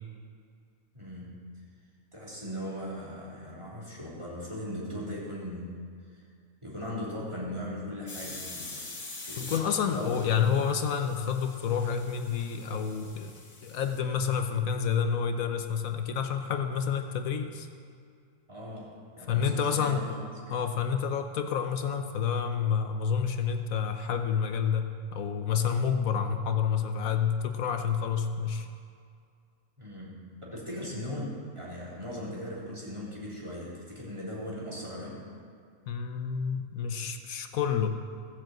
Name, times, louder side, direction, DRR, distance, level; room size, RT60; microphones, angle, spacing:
voice 1, 0.9-1.4 2.1-5.8 6.6-8.9 9.2-9.7 9.9-10.5 18.5-20.1 20.5-20.6 29.8-35.2, left 1 dB, 20° right, -7 dB, 3.5 m, -39 dB
sound 1, 8.1-14.0, left 3 dB, 60° left, 2.2 m, -45 dB
voice 2, 9.4-13.3 13.6-17.7 19.3-20.0 20.5-28.7 35.9-37.9, left 7 dB, 80° left, 6 dB, 1.2 m, -29 dB
15.5 x 7.6 x 7.7 m, 2.3 s
omnidirectional pair, 1.4 m